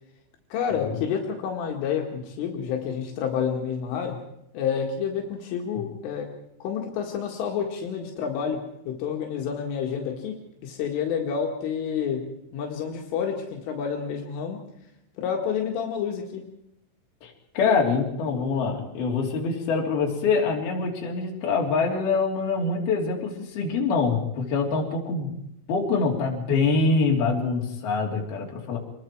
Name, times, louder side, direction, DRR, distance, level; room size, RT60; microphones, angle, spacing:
voice 1, 0.5-4.2 4.5-6.3 6.6-10.3 10.6-12.2 12.5-14.6 15.2-16.4, left 7 dB, 80° left, 1 dB, 4.5 m, -29 dB
voice 2, 17.2-25.3 25.7-28.8, left 4 dB, 55° left, -1 dB, 5.1 m, -25 dB
27.0 x 21.5 x 4.7 m, 0.79 s
omnidirectional pair, 5.7 m